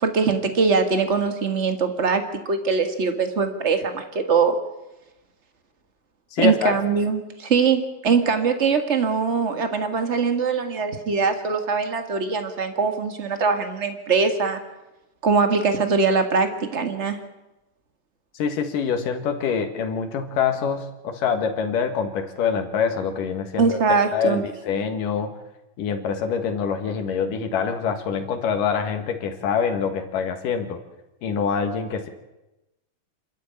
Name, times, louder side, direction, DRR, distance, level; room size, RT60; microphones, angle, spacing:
voice 1, 0.0-4.5 6.4-14.6 15.2-17.2 23.6-24.4, right 5 dB, 50° right, 7 dB, 0.8 m, -22 dB
voice 2, 6.3-6.7 18.3-23.8 24.1-25.3 25.8-30.8 31.2-32.1, left 6 dB, 70° left, 6 dB, 3.4 m, -25 dB
27.5 x 13.0 x 8.7 m, 0.99 s
omnidirectional pair, 4.0 m